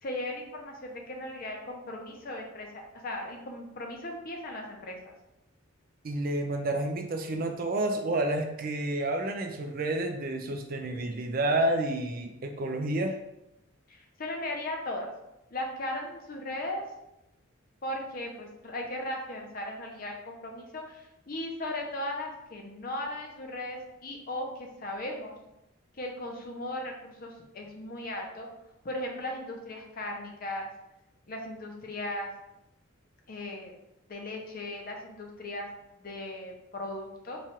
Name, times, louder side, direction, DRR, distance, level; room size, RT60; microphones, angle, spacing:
voice 1, 0.0-5.1 13.9-15.1 15.5-16.8 17.8-25.4 26.0-28.5 28.8-30.7 31.3-32.3 33.3-33.7 34.1-35.7 36.0-37.4, left 1 dB, 45° left, 1 dB, 0.6 m, -37 dB
voice 2, 6.0-13.2, right 1 dB, 45° right, 4 dB, 0.4 m, -30 dB
3.1 x 2.4 x 4.3 m, 0.88 s
head